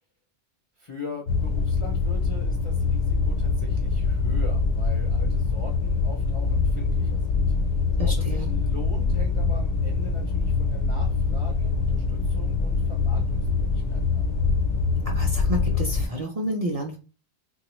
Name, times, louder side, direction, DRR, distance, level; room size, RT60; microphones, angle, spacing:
voice 1, 0.8-7.5 8.2-14.3, left 4 dB, 45° left, -1 dB, 0.4 m, -42 dB
sound 1, 1.3-16.1, left 4 dB, 85° left, 0.9 m, -24 dB
voice 2, 8.0-8.5 15.1-17.0, equal, 45° right, 0 dB, 0.5 m, -30 dB
3.1 x 2.3 x 3.0 m, 0.34 s
omnidirectional pair, 1.2 m